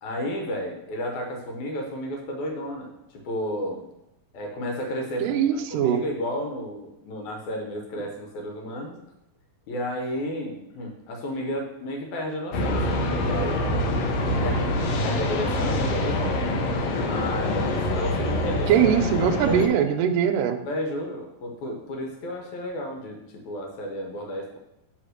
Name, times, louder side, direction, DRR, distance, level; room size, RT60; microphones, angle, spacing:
voice 1, 0.0-3.8 4.3-8.9 9.7-14.0 14.4-14.8 15.0-16.5 17.0-18.9 19.4-19.8 20.6-24.6, equal, 65° left, 1 dB, 2.0 m, -32 dB
voice 2, 5.2-6.0 18.7-20.6, right 9 dB, 80° right, 6 dB, 2.0 m, -21 dB
sound 1, 12.5-19.7, left 1 dB, 90° left, 1.5 m, -25 dB
6.5 x 4.0 x 6.4 m, 0.88 s
omnidirectional pair, 4.2 m